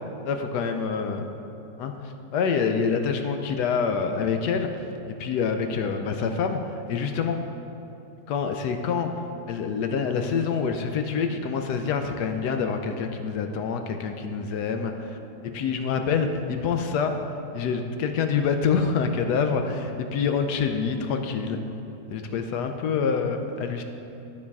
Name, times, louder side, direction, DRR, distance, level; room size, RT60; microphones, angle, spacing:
voice 1, 0.2-1.2 1.8-4.7 5.2-7.4 8.3-9.1 9.5-15.2 15.4-17.1 17.5-21.6 22.1-23.8, left 6 dB, 75° left, 6 dB, 1.1 m, -26 dB
12.0 x 4.7 x 3.5 m, 2.8 s
omnidirectional pair, 2.0 m